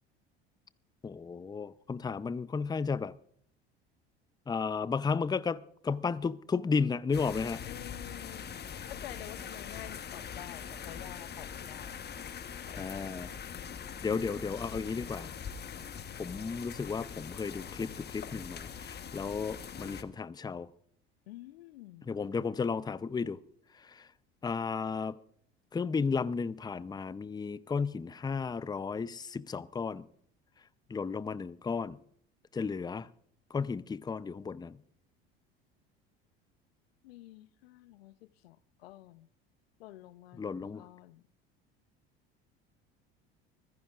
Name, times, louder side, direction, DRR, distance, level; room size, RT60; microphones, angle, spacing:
voice 1, 1.0-3.1 4.5-7.6 12.8-13.3 14.0-15.3 16.2-20.7 22.1-23.4 23.8-24.1 24.4-25.2 25.7-30.1 30.9-32.0 32.5-33.1 33.5-34.8 40.4-40.8, left 5 dB, 15° left, 0.6 m, -33 dB
sound 1, 7.1-20.0, left 7 dB, 35° left, 1.2 m, -43 dB
voice 2, 7.7-8.5 8.9-11.9 12.2-12.4 12.7-12.9 21.3-22.1 37.0-39.3 39.8-41.2, left 16 dB, 80° left, 0.7 m, -49 dB
24.5 x 15.5 x 2.5 m
hypercardioid pair, 70°, 31 cm